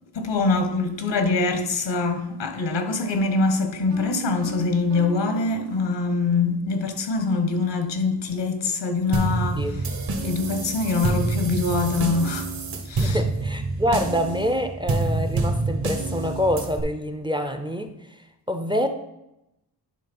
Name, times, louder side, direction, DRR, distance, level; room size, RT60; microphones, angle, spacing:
voice 1, 0.1-9.8 10.2-12.5 12.9-13.2, left 3 dB, 80° left, 1.2 m, -24 dB
Piano, 3.9-6.4, right 9 dB, 80° right, 1.8 m, -40 dB
sound 1, 9.1-16.8, right 3 dB, 60° right, 1.4 m, -27 dB
voice 2, 13.0-17.9 18.5-18.9, equal, 10° right, 0.5 m, -26 dB
10.0 x 3.6 x 5.3 m
wide cardioid pair, 110°, 42 cm